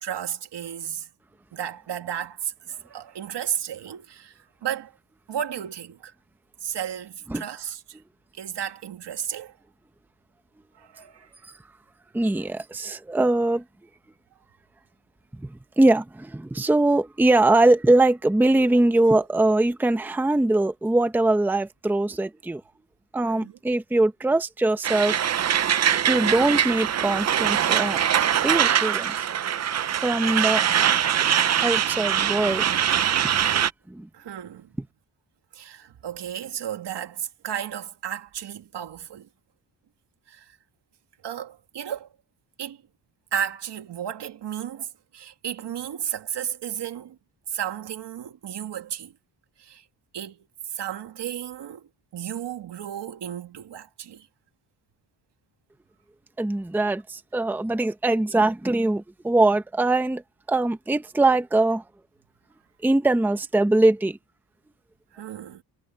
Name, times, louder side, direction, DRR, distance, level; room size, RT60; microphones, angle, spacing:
voice 1, 0.0-1.1 1.5-4.3 4.6-4.9 5.3-6.1 6.6-8.0 8.4-9.6 10.8-11.3 23.2-23.6 27.9-28.5 34.1-34.7 35.5-39.3 40.3-40.5 41.2-42.1 42.6-42.8 43.3-47.2 47.5-49.1 49.6-49.8 50.1-54.3 65.1-65.6, right 9 dB, 75° right, 2.1 m, -33 dB
voice 2, 12.1-13.6 15.4-22.6 23.1-25.2 26.1-28.0 28.4-29.1 30.0-30.6 31.6-32.7 33.9-34.1 56.4-60.2 60.5-61.8 62.8-64.2, right 2 dB, 5° right, 0.7 m, -22 dB
Truck, 24.8-33.7, right 9 dB, 40° right, 0.5 m, -23 dB
wide cardioid pair, 175°, 42 cm